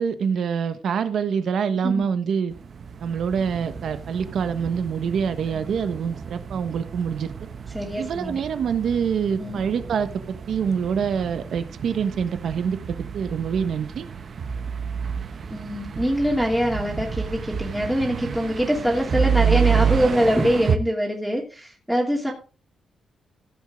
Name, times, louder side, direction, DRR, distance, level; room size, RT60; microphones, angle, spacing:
voice 1, 0.0-2.5 3.0-7.3 8.0-14.1, right 7 dB, 65° right, 10 dB, 1.3 m, -25 dB
sound 1, 2.5-20.8, right 7 dB, 45° right, 1.0 m, -29 dB
voice 2, 7.7-8.4 9.4-9.6 15.5-22.3, equal, 5° right, -3 dB, 2.8 m, -24 dB
15.5 x 7.7 x 3.7 m, 0.33 s
cardioid pair, 125°, 0 cm